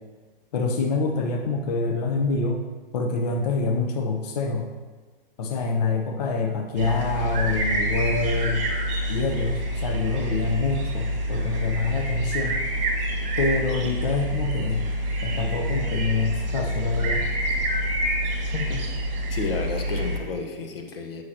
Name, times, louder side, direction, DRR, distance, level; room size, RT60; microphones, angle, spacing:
voice 1, 0.5-2.6 2.9-4.7 5.4-8.7 9.1-12.6 13.4-14.9 15.2-17.3, left 3 dB, 45° left, 2 dB, 0.7 m, -26 dB
sound 1, 6.8-20.2, right 1 dB, 50° right, 1.6 m, -27 dB
voice 2, 18.5-18.8 19.3-21.2, left 4 dB, 75° left, 4 dB, 1.1 m, -31 dB
8.4 x 6.2 x 2.8 m, 1.4 s
hypercardioid pair, 150°, 29 cm